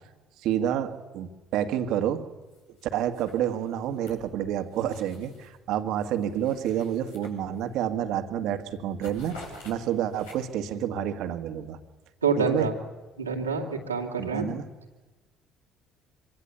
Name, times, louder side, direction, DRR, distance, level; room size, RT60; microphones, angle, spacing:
voice 1, 0.4-2.3 2.9-9.4 9.6-11.8 12.4-12.7 14.2-14.6, right 10 dB, 60° right, 7 dB, 1.9 m, -29 dB
sound 1, 2.5-2.8 3.1-5.6 6.0-7.9 8.2-8.5 8.7-10.7, left 1 dB, 80° left, 6.0 m, -49 dB
voice 2, 12.2-12.7 13.2-14.5, right 5 dB, 90° right, 1 dB, 2.6 m, -27 dB
25.0 x 24.0 x 7.1 m, 1.2 s
figure-of-eight pair, 50°, 0 cm